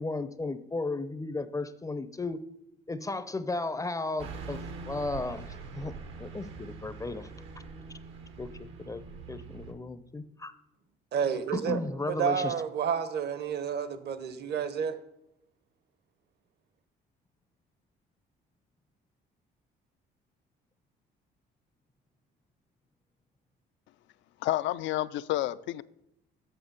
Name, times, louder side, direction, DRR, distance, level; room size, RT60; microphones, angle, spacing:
voice 1, 0.0-2.4 2.9-7.3 8.4-10.5 11.5-12.5, left 3 dB, 15° left, 0.5 m, -35 dB
Car passing by / Truck, 4.2-9.7, right 4 dB, 80° right, 1.2 m, -43 dB
voice 2, 11.1-11.8 12.2-15.0, right 7 dB, 55° right, 0.9 m, -30 dB
voice 3, 24.4-25.8, left 15 dB, 70° left, 0.4 m, -30 dB
7.5 x 5.6 x 6.6 m
supercardioid pair, 80°, 20 cm